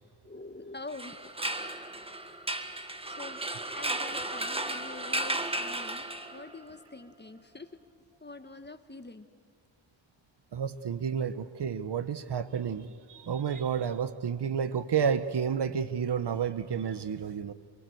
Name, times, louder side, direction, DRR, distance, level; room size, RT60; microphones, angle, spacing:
voice 1, 0.2-1.2 3.1-3.4 3.7-6.0 6.3-7.8 8.2-9.3 13.5-13.6 17.0-17.1, left 3 dB, 20° left, 9 dB, 1.4 m, -45 dB
sound 1, 0.9-6.6, right 1 dB, 10° right, 1.5 m, -34 dB
voice 2, 10.5-17.5, right 7 dB, 60° right, 13 dB, 1.1 m, -31 dB
27.5 x 23.5 x 7.9 m, 2.1 s
cardioid pair, 85°, 47 cm